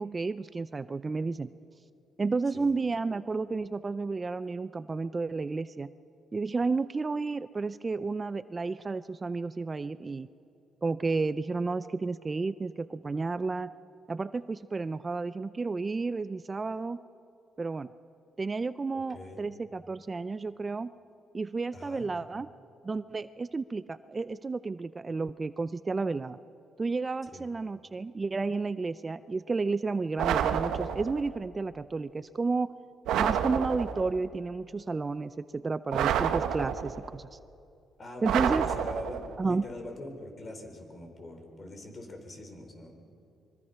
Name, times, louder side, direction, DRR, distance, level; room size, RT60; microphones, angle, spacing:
voice 1, 0.0-1.5 2.2-5.9 6.3-10.3 10.8-13.7 14.1-17.0 17.6-17.9 18.4-20.9 21.3-22.5 22.8-26.4 26.8-32.7 33.2-37.4 38.2-38.6 39.4-39.6, right 4 dB, 30° right, 14 dB, 0.5 m, -32 dB
voice 2, 18.9-19.4 21.7-22.1 27.3-27.4 38.0-42.9, left 1 dB, 35° left, 4 dB, 4.7 m, -43 dB
sound 1, 30.2-31.3 33.1-34.2 35.9-37.1 38.2-39.4, right 9 dB, 85° right, 1.0 m, -29 dB
24.5 x 23.0 x 5.8 m, 2.5 s
cardioid pair, 90°, 0 cm